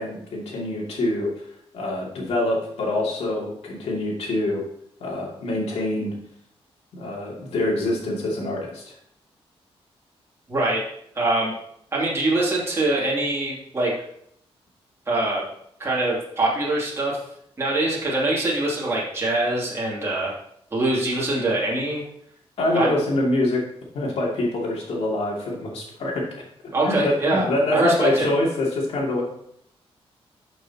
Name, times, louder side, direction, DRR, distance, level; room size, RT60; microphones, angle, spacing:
voice 1, 0.0-1.5 1.7-4.6 5.0-6.1 6.9-8.9 22.6-23.6 23.9-26.3 26.8-29.2, left 1 dB, 80° left, -3 dB, 2.8 m, -25 dB
voice 2, 10.5-10.8 11.1-11.5 11.9-13.9 15.1-15.4 15.8-17.2 17.6-20.3 20.7-22.0 22.7-22.9 26.7-27.5 27.7-28.3, right 2 dB, 25° right, -6 dB, 2.8 m, -23 dB
12.5 x 6.3 x 3.0 m, 0.72 s
wide cardioid pair, 135°, 10 cm